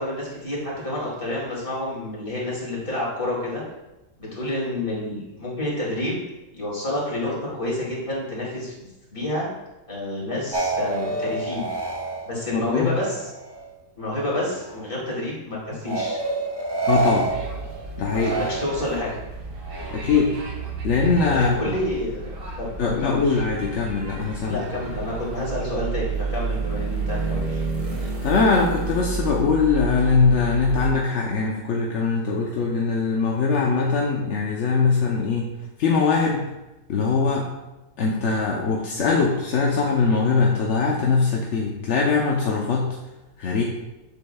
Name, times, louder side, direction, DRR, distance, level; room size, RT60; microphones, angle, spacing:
voice 1, 0.0-3.6 4.2-6.2 6.5-8.7 9.1-9.5 9.9-11.7 12.2-13.2 14.0-16.2 18.2-19.1 21.3-22.2 22.6-23.4 24.4-27.6, left 1 dB, 30° left, -5 dB, 2.6 m, -29 dB
sound 1, 10.5-13.7 14.1-14.9 15.9-19.1 19.6-20.4, right 2 dB, 20° right, 0.9 m, -29 dB
voice 2, 12.5-12.9 16.9-17.3 18.0-18.3 19.9-20.4 20.8-21.7 22.8-24.6 28.0-35.5 35.8-36.5 36.9-37.5 38.0-42.9 43.4-43.6, left 4 dB, 55° left, -2 dB, 0.9 m, -21 dB
sound 2, 17.3-30.9, right 4 dB, 75° right, 1.8 m, -31 dB
8.0 x 7.1 x 2.3 m, 0.99 s
omnidirectional pair, 1.8 m